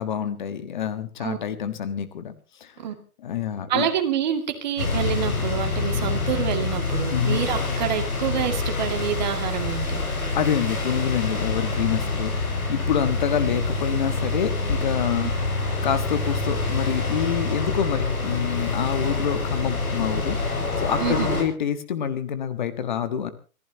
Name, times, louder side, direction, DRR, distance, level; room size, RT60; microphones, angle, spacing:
voice 1, 0.0-2.7 3.2-3.9 7.1-7.4 10.3-15.3 15.8-23.3, left 8 dB, 30° left, 11 dB, 1.5 m, -27 dB
voice 2, 3.7-10.0 21.0-21.3, right 9 dB, 30° right, 6 dB, 2.3 m, -27 dB
sound 1, 4.8-21.4, left 3 dB, 70° left, 6.8 m, -26 dB
29.0 x 15.5 x 2.9 m, 0.35 s
hypercardioid pair, 165°, 45 cm